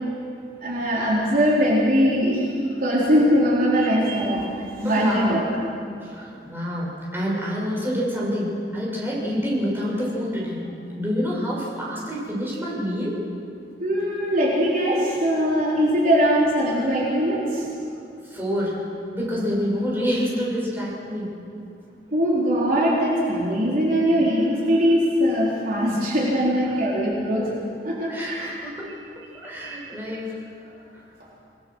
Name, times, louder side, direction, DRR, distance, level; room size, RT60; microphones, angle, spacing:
voice 1, 0.6-2.5 2.8-5.5 13.8-17.7 22.1-27.5 27.8-28.5 29.5-29.8, equal, 55° right, -5 dB, 4.1 m, -21 dB
voice 2, 4.8-5.5 6.0-10.7 11.0-13.2 18.2-18.8 19.1-21.3 28.1-28.9 29.4-30.3, equal, 15° right, -5 dB, 7.0 m, -27 dB
27.5 x 20.0 x 6.4 m, 2.5 s
head